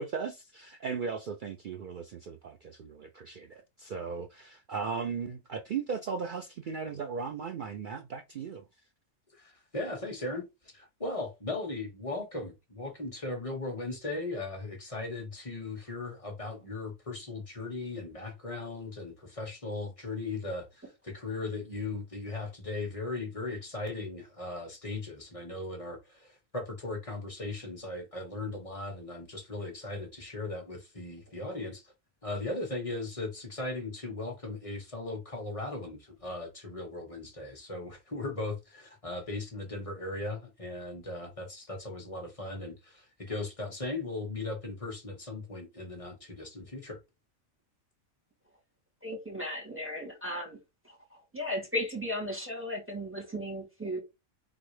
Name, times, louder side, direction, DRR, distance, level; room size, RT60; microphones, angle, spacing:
voice 1, 0.0-8.6, right 5 dB, 65° right, 0.5 m, -37 dB
voice 2, 9.3-31.9 32.2-47.0, left 2 dB, 25° left, 1.2 m, -38 dB
voice 3, 49.0-50.6 50.8-51.0 51.3-54.0, left 1 dB, 10° right, 2.4 m, -35 dB
4.0 x 3.9 x 3.2 m
omnidirectional pair, 1.4 m